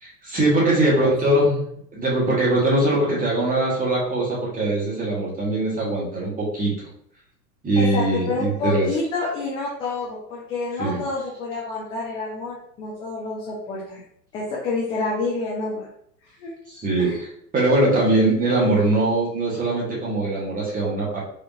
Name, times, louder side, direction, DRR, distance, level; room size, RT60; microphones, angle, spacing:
voice 1, 0.0-1.6 1.9-6.7 7.6-8.9 10.8-11.0 16.8-17.1 17.5-21.2, right 2 dB, 15° right, -4 dB, 1.5 m, -21 dB
voice 2, 0.7-1.4 7.8-14.0 14.3-15.9 16.4-16.5 17.0-17.2, left 3 dB, 10° left, -6 dB, 0.3 m, -28 dB
5.0 x 2.7 x 2.7 m, 0.68 s
figure-of-eight pair, 90°, 50 cm